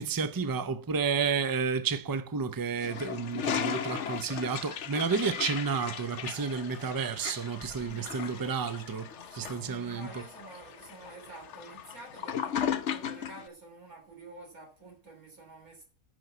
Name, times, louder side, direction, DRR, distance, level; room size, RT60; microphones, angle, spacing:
voice 1, 0.0-10.2, right 5 dB, 35° right, 0.3 m, -31 dB
Toilet flush, 2.8-13.4, left 8 dB, 60° left, 1.0 m, -37 dB
sound 1, 4.7-11.7, equal, 25° left, 4.6 m, -56 dB
voice 2, 7.8-8.6 9.3-15.8, right 2 dB, 75° right, 3.7 m, -49 dB
9.8 x 6.1 x 6.9 m
omnidirectional pair, 1.5 m